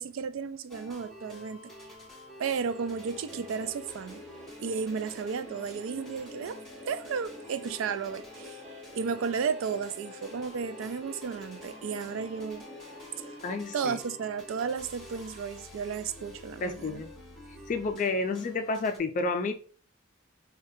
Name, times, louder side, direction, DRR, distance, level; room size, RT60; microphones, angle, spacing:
voice 1, 0.0-1.6 2.4-4.2 4.6-6.6 6.9-8.6 8.9-12.7 13.7-17.0, right 6 dB, 75° right, 0.3 m, -33 dB
sound 1, 0.7-19.0, left 1 dB, ahead, 1.1 m, -49 dB
sound 2, 2.4-14.2, left 1 dB, 35° right, 1.1 m, -48 dB
voice 2, 13.4-14.0 16.6-17.1 17.7-19.5, left 3 dB, 40° left, 0.3 m, -30 dB
4.9 x 2.2 x 2.7 m
head